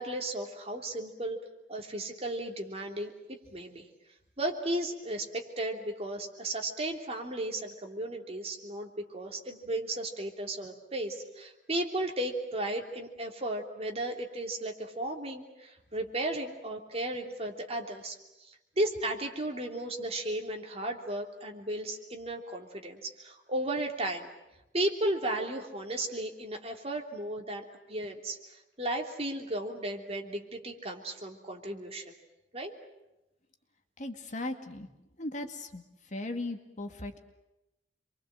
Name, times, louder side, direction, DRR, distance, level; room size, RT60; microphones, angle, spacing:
voice 1, 0.0-1.4 1.7-3.1 3.5-3.9 4.4-24.3 24.7-27.6 27.9-32.1 32.5-32.7, right 1 dB, 35° right, 2 dB, 3.2 m, -35 dB
voice 2, 34.0-34.9 35.2-35.8 36.1-37.2, left 2 dB, 45° left, 6 dB, 2.1 m, -37 dB
28.5 x 23.5 x 7.7 m, 0.95 s
head